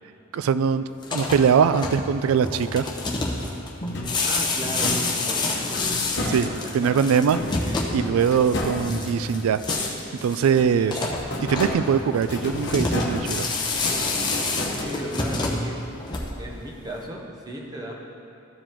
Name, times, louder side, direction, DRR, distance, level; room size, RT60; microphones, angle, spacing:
voice 1, 0.3-2.9 6.3-6.5 6.7-7.4 7.9-9.6 10.2-11.0 11.4-13.5, right 7 dB, 85° right, 13 dB, 0.3 m, -22 dB
sound 1, 0.9-16.6, left 3 dB, 20° left, 0.8 m, -29 dB
sound 2, 3.8-6.8 7.3-10.1 10.5-15.4, left 1 dB, 55° left, 1.0 m, -32 dB
voice 2, 4.2-5.8 6.1-7.9 10.7-11.0 14.8-15.8 16.4-17.9, equal, 20° right, -2 dB, 0.9 m, -36 dB
14.0 x 4.8 x 3.7 m, 2.6 s
head